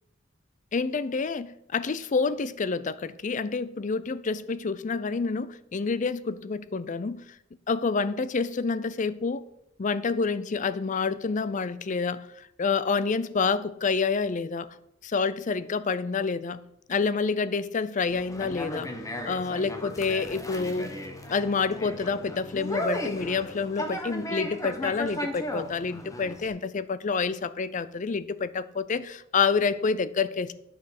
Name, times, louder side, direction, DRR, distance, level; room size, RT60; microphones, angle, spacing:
voice 1, 0.7-7.2 7.7-9.5 9.8-14.8 15.0-16.6 16.9-18.9 19.3-20.9 21.3-30.5, left 4 dB, 40° left, 0.5 m, -28 dB
Conversation, 18.1-26.5, equal, 15° left, 1.2 m, -35 dB
9.6 x 6.2 x 5.9 m
head